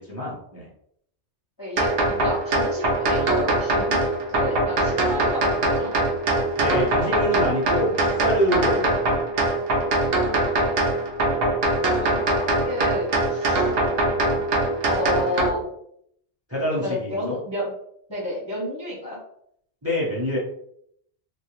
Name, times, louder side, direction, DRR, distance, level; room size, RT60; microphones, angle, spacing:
voice 1, 0.1-0.7 6.5-9.0 16.5-17.4 19.8-20.4, equal, 15° right, -4 dB, 0.7 m, -26 dB
voice 2, 1.6-6.0 11.7-13.7 14.9-15.7 16.7-17.7 18.1-19.2, left 1 dB, 25° left, -5 dB, 0.6 m, -31 dB
sound 1, 1.8-15.5, right 2 dB, 65° right, 0.8 m, -22 dB
2.7 x 2.4 x 3.1 m, 0.71 s
omnidirectional pair, 1.2 m